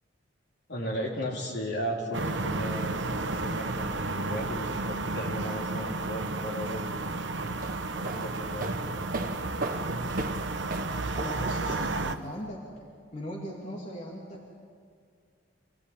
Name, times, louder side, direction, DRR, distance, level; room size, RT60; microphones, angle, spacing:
voice 1, 0.7-7.0 8.0-8.8, equal, 60° left, -1 dB, 4.1 m, -35 dB
sound 1, 2.1-12.2, right 2 dB, 70° right, 1.0 m, -32 dB
sound 2, 7.5-12.3, right 2 dB, 50° right, 1.4 m, -37 dB
voice 2, 11.1-12.6 13.1-14.5, equal, 40° left, -3 dB, 2.8 m, -39 dB
26.5 x 16.0 x 8.6 m, 2.1 s
head